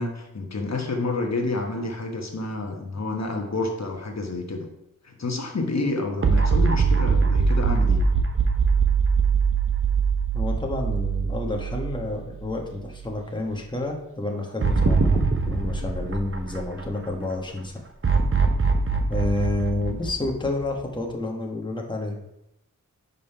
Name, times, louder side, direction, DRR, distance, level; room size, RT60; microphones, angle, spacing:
voice 1, 0.0-4.7 5.0-8.0, left 2 dB, 55° left, 2 dB, 1.2 m, -29 dB
sound 1, 6.2-12.6 12.9-13.0 14.6-17.1 18.0-20.8, right 5 dB, 40° right, 0.9 m, -22 dB
voice 2, 10.3-17.9 19.1-22.2, left 2 dB, 15° left, 1 dB, 1.2 m, -29 dB
5.3 x 5.3 x 5.5 m, 0.86 s
wide cardioid pair, 70°, 32 cm